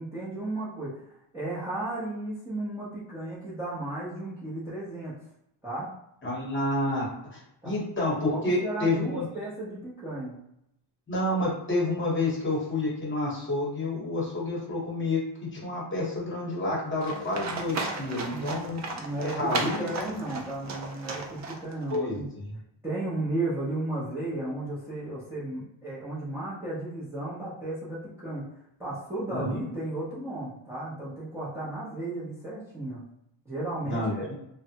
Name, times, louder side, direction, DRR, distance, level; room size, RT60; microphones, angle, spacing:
voice 1, 0.0-5.1 5.6-5.9 7.6-7.8 8.3-10.4 18.3-18.6 18.9-22.3 22.8-28.5 28.8-33.0 33.5-34.3, right 2 dB, 5° right, -10 dB, 0.7 m, -34 dB
voice 2, 6.2-7.1 7.3-9.3 11.1-18.8 19.2-19.9 21.9-22.5 29.3-29.6 33.8-34.1, left 2 dB, 25° left, -5 dB, 1.0 m, -29 dB
Livestock farm animals working animals, 17.0-22.0, right 3 dB, 40° right, 0.4 m, -35 dB
3.3 x 2.1 x 2.8 m, 0.79 s
wide cardioid pair, 170°, 47 cm